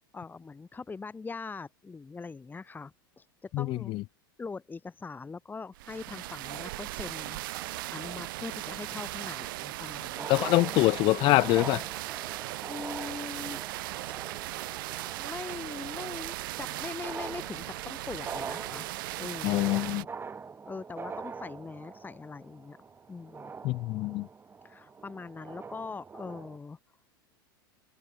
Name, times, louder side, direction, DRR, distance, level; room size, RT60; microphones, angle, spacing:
voice 1, 0.1-4.0 4.4-7.4 7.9-10.3 12.7-13.6 15.2-18.9 19.2-19.7 20.7-22.8 23.1-23.5 24.6-26.8, left 4 dB, 15° left, 3.8 m, -41 dB
voice 2, 3.5-4.0 10.3-11.8 19.4-20.1 23.6-24.3, left 20 dB, 45° left, 0.6 m, -25 dB
sound 1, 5.7-20.0, right 19 dB, 65° right, 2.9 m, -38 dB
sound 2, 7.6-8.6 9.8-9.9 10.1-26.6, right 5 dB, 20° right, 4.7 m, -44 dB
open air
hypercardioid pair, 95°, 12 cm